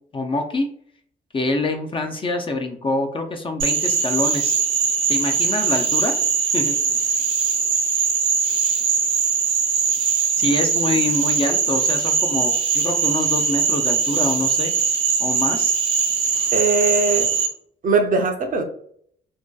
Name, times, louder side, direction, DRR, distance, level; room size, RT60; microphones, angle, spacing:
voice 1, 0.1-0.7 1.3-4.6 5.1-6.1 6.5-6.8 10.4-14.7 15.2-15.7, left 2 dB, 25° left, 4 dB, 0.4 m, -25 dB
Frog, 3.6-17.5, right 6 dB, 80° right, 0.7 m, -21 dB
voice 2, 16.5-17.3 17.8-18.6, right 4 dB, 45° right, 5 dB, 0.5 m, -20 dB
2.6 x 2.2 x 2.2 m, 0.62 s
cardioid pair, 90°, 20 cm